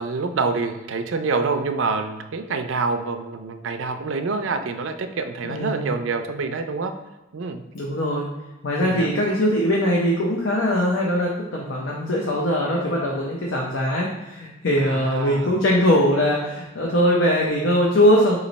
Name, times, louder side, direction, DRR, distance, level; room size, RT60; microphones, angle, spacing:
voice 1, 0.0-6.9 7.3-7.6 8.8-9.1 14.8-15.6, right 4 dB, 85° right, 8 dB, 0.4 m, -26 dB
voice 2, 5.4-5.8 7.7-8.2 8.6-18.4, equal, 85° left, -2 dB, 0.7 m, -21 dB
3.8 x 3.1 x 4.0 m, 1.1 s
head